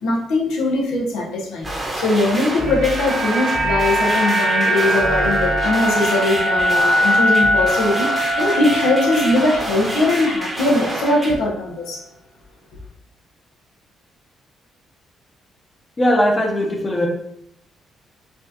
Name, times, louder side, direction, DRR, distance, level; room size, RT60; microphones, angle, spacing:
voice 1, 0.0-1.7 1.9-12.0, left 2 dB, 90° left, -1 dB, 0.9 m, -20 dB
sound 1, 1.6-11.3, right 1 dB, 20° right, 0.9 m, -28 dB
sound 2, 2.2-10.5 10.7-10.9, equal, 45° right, 1.2 m, -21 dB
voice 2, 16.0-17.1, equal, 30° left, 0 dB, 0.8 m, -18 dB
4.6 x 2.6 x 2.8 m, 0.73 s
cardioid pair, 90°, 0 cm